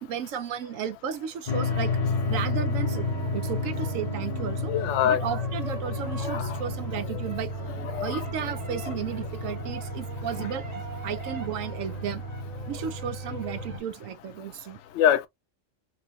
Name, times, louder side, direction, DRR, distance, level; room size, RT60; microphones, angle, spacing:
voice 1, 0.0-1.9 2.3-4.7 5.0-7.5 8.0-10.7 11.0-12.2 12.7-14.8, right 8 dB, 85° right, 1.0 m, -34 dB
sound 1, 1.5-13.8, left 2 dB, 40° left, 0.5 m, -31 dB
sound 2, 2.8-13.8, right 3 dB, 35° right, 0.9 m, -43 dB
voice 2, 4.7-5.2 6.2-6.6 7.1-7.2 7.8-8.2 15.0-15.3, left 10 dB, 70° left, 0.8 m, -25 dB
3.7 x 3.1 x 2.3 m
omnidirectional pair, 1.3 m